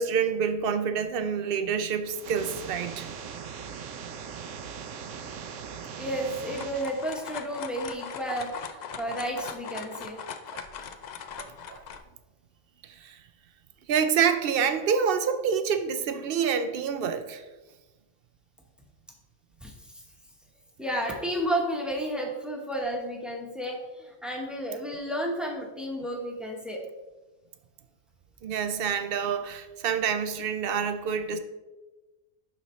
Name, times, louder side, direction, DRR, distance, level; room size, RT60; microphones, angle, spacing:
voice 1, 0.0-3.1 10.5-10.6 11.4-11.8 12.8-13.2 13.9-17.4 28.4-31.4, right 7 dB, 60° right, 9 dB, 0.6 m, -27 dB
sound 1, 2.0-7.0, right 7 dB, 75° right, 1.0 m, -40 dB
voice 2, 6.0-10.2 19.6-20.0 20.8-26.9, right 1 dB, ahead, 0 dB, 0.9 m, -32 dB
sound 2, 6.2-12.0, left 7 dB, 80° left, 0.3 m, -40 dB
11.0 x 4.1 x 3.1 m, 1.1 s
omnidirectional pair, 1.3 m